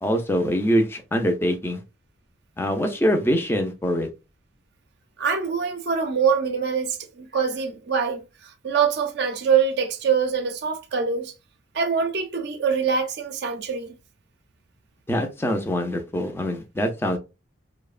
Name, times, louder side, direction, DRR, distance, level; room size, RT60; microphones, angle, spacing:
voice 1, 0.0-1.8 2.6-4.1 15.1-17.2, equal, 10° left, 0.4 m, -24 dB
voice 2, 5.2-11.3 11.7-13.9, right 6 dB, 55° right, 0.4 m, -24 dB
2.7 x 2.0 x 2.4 m
head